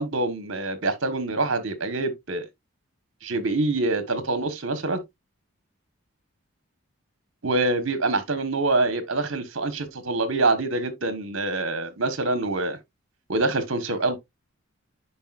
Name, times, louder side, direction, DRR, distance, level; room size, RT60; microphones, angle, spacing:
voice 1, 0.0-2.4 3.2-5.0 7.4-12.8 13.3-14.2, right 2 dB, 60° right, 1.3 m, -25 dB
10.5 x 4.7 x 2.5 m
head